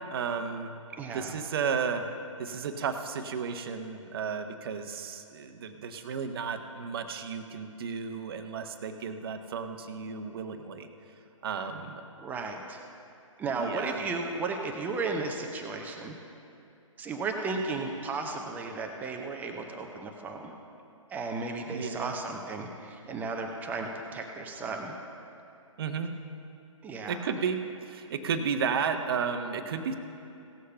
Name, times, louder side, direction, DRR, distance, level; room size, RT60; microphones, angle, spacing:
voice 1, 0.1-0.8 1.1-10.9 11.4-12.0 13.6-14.0 21.7-22.1 25.8-26.1 27.1-29.9, right 6 dB, 45° right, 6 dB, 0.8 m, -33 dB
voice 2, 1.0-1.4 12.2-12.8 13.4-16.2 17.0-20.5 21.1-25.0 26.8-27.2, right 3 dB, 10° right, 3 dB, 0.6 m, -34 dB
16.5 x 6.5 x 5.6 m, 2.6 s
figure-of-eight pair, 140°, 17 cm